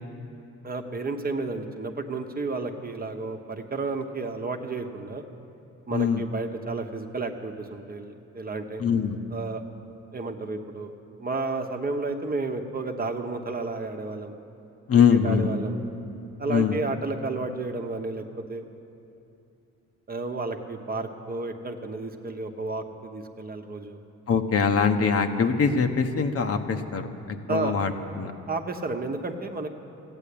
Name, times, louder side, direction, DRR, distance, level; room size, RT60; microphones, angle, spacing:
voice 1, 0.6-5.2 5.9-8.8 9.3-9.6 10.1-10.9 11.2-14.4 15.2-15.8 16.4-18.2 18.5-18.6 20.1-24.0 27.5-27.7 28.5-29.7, right 3 dB, 30° right, 5 dB, 1.1 m, -32 dB
voice 2, 5.9-6.2 8.8-9.2 14.9-15.5 16.5-16.8 24.3-28.3, left 6 dB, 50° left, 6 dB, 1.0 m, -23 dB
14.5 x 9.1 x 8.5 m, 2.8 s
cardioid pair, 90°, 30 cm